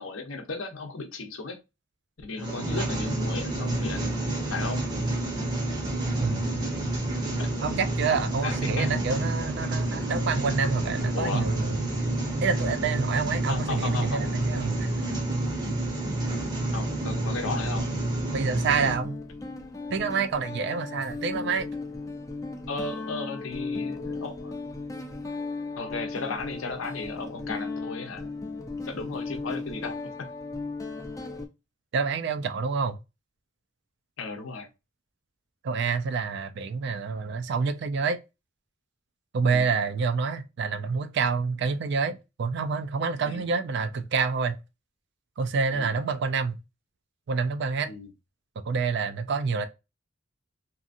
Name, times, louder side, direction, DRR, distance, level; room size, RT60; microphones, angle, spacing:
voice 1, 0.0-1.6 2.2-4.1 4.5-4.8 8.4-8.9 11.1-11.5 13.5-14.4 16.7-17.9 22.7-24.5 25.8-28.4 28.9-30.0 34.2-34.7 39.5-39.8 43.2-43.5 45.7-45.9 47.9-48.1, left 3 dB, 85° left, 0.7 m, -35 dB
sound 1, 2.4-19.0, right 1 dB, 20° right, 0.7 m, -29 dB
voice 2, 7.6-11.9 12.4-14.9 18.3-19.2 19.9-21.7 31.9-33.0 35.6-38.2 39.3-44.6 45.4-46.6 47.3-47.9 48.6-49.7, right 5 dB, 60° right, 0.4 m, -27 dB
Guitar, 17.5-17.8 18.8-31.5, left 3 dB, 15° left, 0.4 m, -36 dB
2.7 x 2.5 x 2.4 m
head